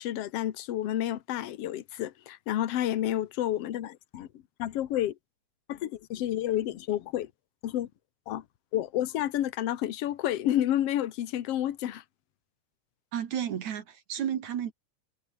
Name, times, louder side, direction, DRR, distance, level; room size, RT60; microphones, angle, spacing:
voice 1, 0.0-4.3 4.6-5.2 5.7-7.3 7.6-7.9 8.3-8.4 8.7-12.0, left 12 dB, 60° left, 2.0 m, -30 dB
voice 2, 13.1-14.7, right 9 dB, 65° right, 3.0 m, -32 dB
omnidirectional pair, 3.6 m